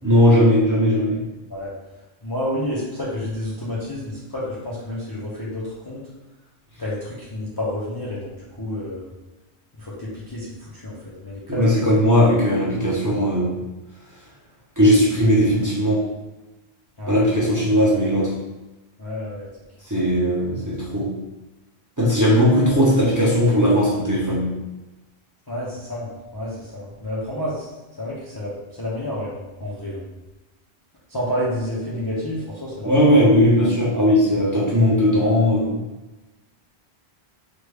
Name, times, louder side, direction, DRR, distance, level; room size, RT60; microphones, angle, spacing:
voice 1, 0.0-1.2 11.5-13.6 14.8-16.1 17.1-18.3 19.9-21.1 22.0-24.6 32.8-35.8, equal, 20° right, -7 dB, 0.7 m, -18 dB
voice 2, 2.2-6.0 6.8-9.1 9.8-11.7 17.0-17.2 19.0-19.5 25.5-27.7 28.0-30.0 31.1-33.2, left 1 dB, 30° left, -7 dB, 0.5 m, -30 dB
3.3 x 2.2 x 3.3 m, 1.1 s
omnidirectional pair, 1.1 m